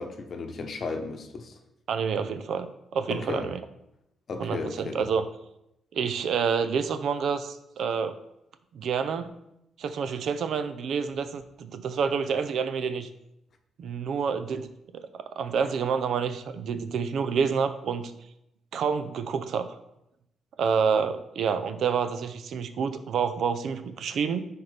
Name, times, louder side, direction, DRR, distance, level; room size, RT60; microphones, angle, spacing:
voice 1, 0.0-1.6 3.1-3.5 4.3-5.0, left 3 dB, 45° left, 5 dB, 0.9 m, -34 dB
voice 2, 1.9-3.6 4.4-5.2 5.9-8.2 8.7-9.3 9.8-13.1 13.8-14.7 14.9-18.1 18.7-19.8 20.6-24.4, right 6 dB, 70° right, 10 dB, 0.5 m, -28 dB
10.5 x 4.3 x 3.4 m, 0.83 s
cardioid pair, 135°, 0 cm